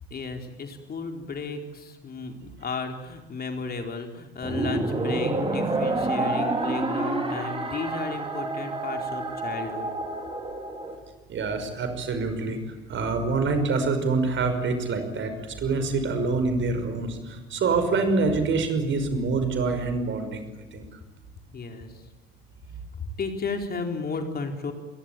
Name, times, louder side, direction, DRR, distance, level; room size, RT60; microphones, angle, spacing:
voice 1, 0.1-9.9 21.5-22.1 23.0-24.7, left 4 dB, 30° left, 4 dB, 4.1 m, -34 dB
sound 1, 4.4-11.0, right 2 dB, 15° right, 5.7 m, -28 dB
voice 2, 11.3-12.6 12.9-20.5 20.7-20.9, right 3 dB, 40° right, 8 dB, 5.5 m, -26 dB
27.0 x 22.0 x 9.2 m, 1.2 s
figure-of-eight pair, 65°, 31 cm